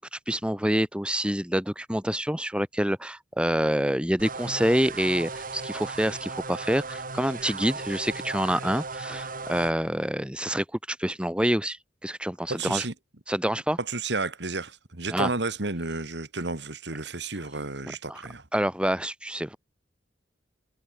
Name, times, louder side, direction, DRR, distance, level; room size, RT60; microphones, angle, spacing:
voice 1, 0.0-11.8 12.0-12.8 13.3-13.8 15.1-15.3 18.1-18.2 18.5-19.6, equal, 5° right, 2.4 m, -27 dB
sound 1, 4.2-9.7, right 3 dB, 50° right, 4.4 m, -36 dB
voice 2, 12.5-12.9 13.8-18.5, right 3 dB, 70° right, 2.3 m, -31 dB
head